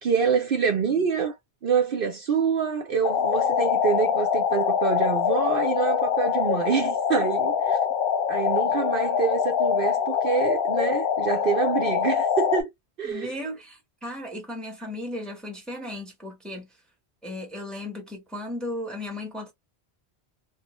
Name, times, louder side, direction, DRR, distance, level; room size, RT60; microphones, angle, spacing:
voice 1, 0.0-1.4 1.6-7.8 8.3-12.7 13.0-13.3, right 6 dB, 60° right, 0.7 m, -26 dB
sound 1, 3.0-12.6, left 7 dB, 65° left, 0.7 m, -24 dB
voice 2, 13.0-16.7 17.2-19.5, left 1 dB, ahead, 0.8 m, -35 dB
2.4 x 2.1 x 2.8 m
omnidirectional pair, 1.1 m